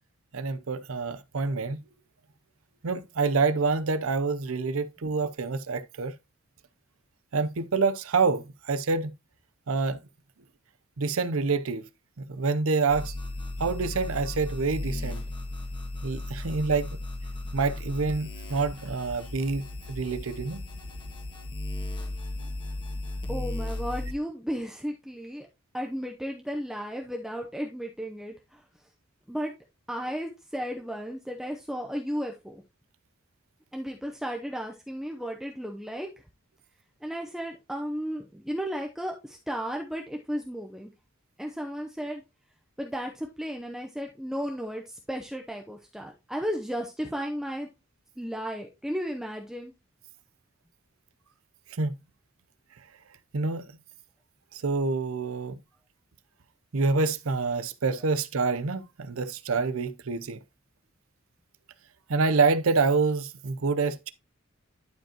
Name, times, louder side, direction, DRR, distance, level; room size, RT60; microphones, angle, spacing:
voice 1, 0.3-1.8 2.8-6.1 7.3-9.1 9.7-10.0 11.0-11.9 12.2-13.1 13.6-15.2 16.0-16.9 17.5-20.6 51.8-51.9 53.3-53.6 54.5-55.6 56.7-60.4 62.1-64.1, right 4 dB, 90° right, 0.7 m, -27 dB
sound 1, 12.9-24.1, left 2 dB, 25° left, 1.6 m, -35 dB
voice 2, 23.3-25.5 25.7-28.9 29.3-29.5 29.9-32.6 33.7-36.1 37.0-40.9 41.4-42.2 42.8-47.7 48.2-49.7, equal, ahead, 0.7 m, -34 dB
11.5 x 5.1 x 2.9 m
head